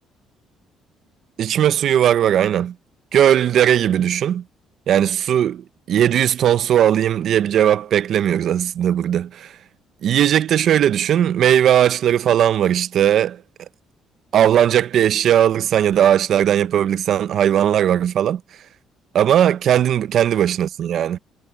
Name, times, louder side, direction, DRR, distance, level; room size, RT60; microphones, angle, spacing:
voice 1, 1.4-2.7 3.1-4.4 4.9-9.5 10.0-13.4 14.3-18.4 19.1-21.2, right 10 dB, 60° right, 0.6 m, -18 dB
cardioid pair, 125°, 0 cm